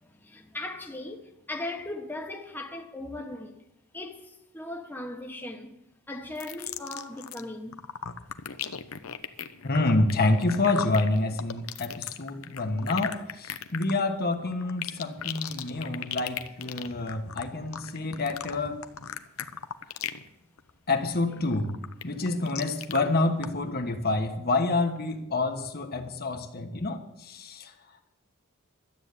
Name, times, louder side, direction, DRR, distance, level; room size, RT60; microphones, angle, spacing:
voice 1, 0.0-3.5 3.9-5.8 6.1-7.8, left 2 dB, 10° left, 1.1 m, -38 dB
sound 1, 6.4-7.4 7.7-20.3 20.6-20.9 21.3-23.0 23.4-23.5, left 8 dB, 70° left, 0.8 m, -37 dB
voice 2, 9.6-18.7 20.9-21.7 22.0-27.7, left 2 dB, 45° left, 1.3 m, -28 dB
12.5 x 9.0 x 8.2 m
head